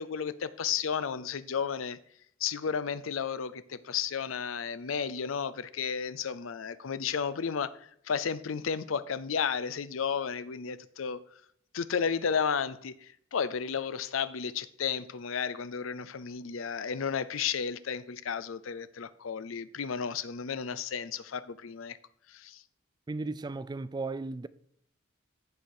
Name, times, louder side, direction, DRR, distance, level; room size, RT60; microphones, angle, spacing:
voice 1, 0.0-2.0 2.4-11.2 11.7-22.0 22.3-22.6, left 6 dB, 85° left, 0.5 m, -33 dB
voice 2, 23.1-24.5, right 3 dB, 20° right, 0.3 m, -35 dB
14.5 x 4.8 x 4.4 m
head